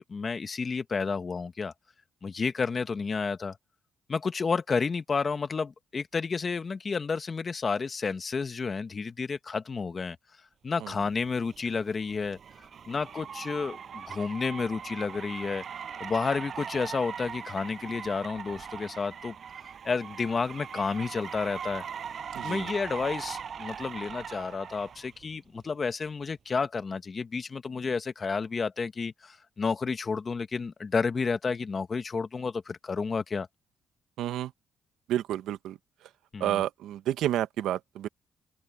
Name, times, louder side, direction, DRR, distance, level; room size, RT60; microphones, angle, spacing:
voice 1, 0.0-1.7 2.2-3.6 4.1-10.2 10.6-12.4 12.9-15.6 16.0-19.3 19.8-21.8 22.4-33.5 36.3-36.6, left 5 dB, 35° left, 1.6 m, -31 dB
Car, 11.2-25.1, right 7 dB, 55° right, 6.6 m, -40 dB
voice 2, 22.3-22.7 34.2-34.5 35.1-35.8 36.4-38.1, right 12 dB, 85° right, 1.2 m, -30 dB
open air
cardioid pair, 90°, 0 cm